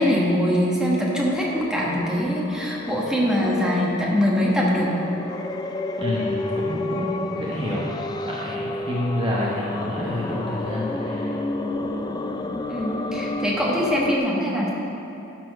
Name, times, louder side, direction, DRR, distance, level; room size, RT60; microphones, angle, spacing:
voice 1, 0.0-4.9 12.7-14.7, equal, 5° right, -4 dB, 1.3 m, -23 dB
sound 1, 1.2-14.2, left 2 dB, 20° left, 0.3 m, -31 dB
voice 2, 6.0-8.0 8.2-11.3, left 1 dB, 25° right, -5 dB, 1.0 m, -28 dB
12.5 x 4.3 x 5.3 m, 3.0 s
head